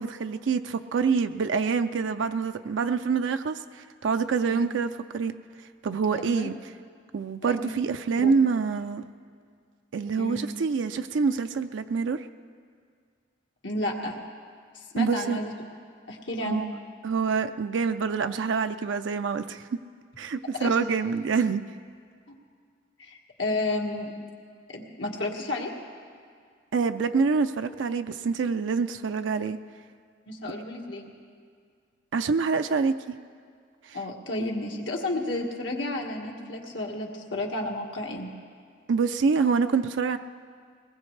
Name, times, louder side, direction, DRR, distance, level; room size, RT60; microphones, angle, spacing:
voice 1, 0.0-5.3 5.8-6.5 7.1-9.0 9.9-12.3 15.0-15.4 16.4-16.7 17.0-19.7 20.2-21.6 26.7-29.6 32.1-33.2 33.9-34.0 38.9-40.2, right 5 dB, 80° right, 8 dB, 0.4 m, -26 dB
voice 2, 6.2-6.5 7.4-7.7 8.2-8.3 10.2-10.4 13.6-14.2 14.9-15.5 16.1-16.6 20.6-20.8 22.3-22.4 23.0-24.1 24.7-25.7 30.3-31.1 33.9-38.3, left 2 dB, 75° left, 0 dB, 1.8 m, -32 dB
22.0 x 20.0 x 3.3 m, 2.1 s
head